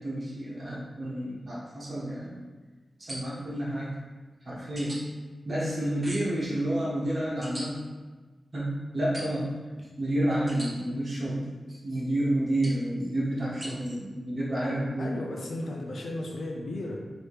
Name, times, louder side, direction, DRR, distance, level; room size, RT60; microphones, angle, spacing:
voice 1, 0.0-2.4 3.0-3.9 4.4-5.0 5.4-7.8 8.5-15.2, right 1 dB, 40° right, -6 dB, 1.2 m, -30 dB
sound 1, 3.1-3.5 4.8-5.0 6.0-6.4 7.4-7.7 9.1-9.5 10.5-10.7 12.6-12.9 13.6-13.7, right 1 dB, 25° right, 0.7 m, -40 dB
voice 2, 15.0-17.0, left 1 dB, 65° left, 0 dB, 0.6 m, -35 dB
4.9 x 3.1 x 3.1 m, 1.3 s
wide cardioid pair, 175°, 0 cm